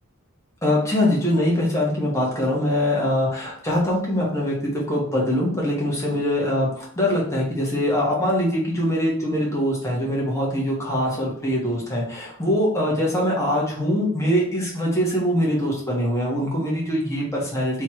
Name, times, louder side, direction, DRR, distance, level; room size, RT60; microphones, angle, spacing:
voice 1, 0.6-17.8, left 1 dB, 15° left, -4 dB, 1.3 m, -23 dB
3.2 x 3.1 x 4.4 m, 0.63 s
head